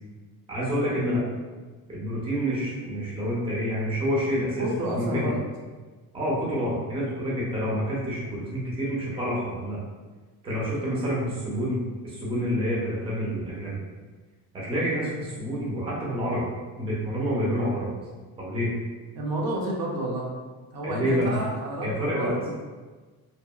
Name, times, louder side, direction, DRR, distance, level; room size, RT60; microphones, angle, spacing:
voice 1, 0.5-1.2 1.9-5.3 6.1-9.8 10.4-13.8 14.5-16.5 16.8-17.9 18.4-18.7 20.8-21.4 21.8-22.3, equal, 15° right, -6 dB, 0.5 m, -28 dB
voice 2, 4.6-5.4 19.1-20.3 20.7-22.5, right 1 dB, 65° right, -2 dB, 0.6 m, -30 dB
2.7 x 2.3 x 2.2 m, 1.3 s
cardioid pair, 170°, 40 cm